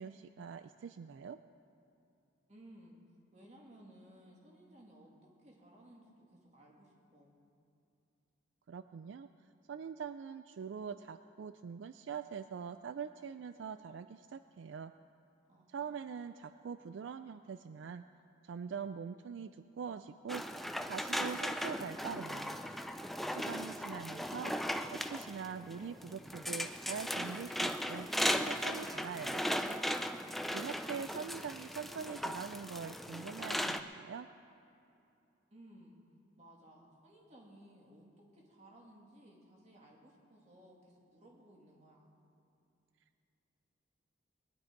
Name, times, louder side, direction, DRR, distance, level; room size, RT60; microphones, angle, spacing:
voice 1, 0.0-1.4 8.7-9.3 9.7-14.9 15.7-18.0 18.4-19.5 19.8-20.4 20.9-22.5 23.3-24.5 24.9-28.1 28.4-29.4 30.5-34.3, right 6 dB, 75° right, 11 dB, 0.3 m, -43 dB
voice 2, 2.5-3.0 3.3-5.1 5.4-7.3 15.5-16.0 35.5-36.0 36.4-38.0 38.3-42.1, right 1 dB, 35° right, -2 dB, 2.3 m, -59 dB
sound 1, 20.3-33.8, equal, ahead, 0.3 m, -37 dB
21.5 x 11.0 x 4.6 m, 2.7 s
head